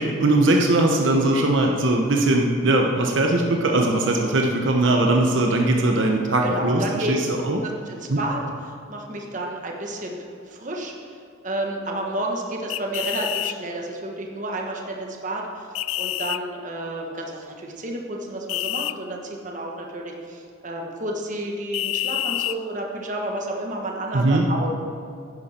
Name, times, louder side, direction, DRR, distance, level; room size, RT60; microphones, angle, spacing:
voice 1, 0.0-7.6 8.1-8.2 24.1-24.5, right 2 dB, 70° right, 1 dB, 0.9 m, -20 dB
voice 2, 6.4-7.2 7.6-8.4 8.9-10.9 11.4-15.7 16.0-24.7, right 1 dB, 40° right, 0 dB, 1.3 m, -31 dB
sound 1, 12.7-13.5 15.7-16.4 18.5-18.9 21.7-22.6, left 15 dB, 85° left, 0.3 m, -27 dB
10.5 x 10.5 x 4.4 m, 2.4 s
head